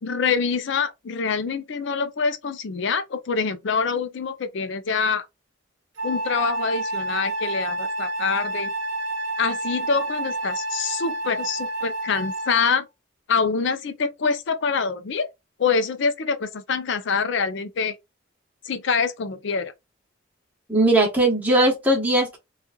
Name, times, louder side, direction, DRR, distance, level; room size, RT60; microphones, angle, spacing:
voice 1, 0.0-5.2 6.0-8.7 9.4-12.8 13.3-15.3 15.6-17.9 18.7-19.7, left 5 dB, 65° left, 0.5 m, -25 dB
Wind instrument woodwind instrument, 6.0-12.7, right 1 dB, 65° right, 0.8 m, -29 dB
voice 2, 20.7-22.4, right 1 dB, 10° right, 1.0 m, -19 dB
2.9 x 2.4 x 2.2 m
head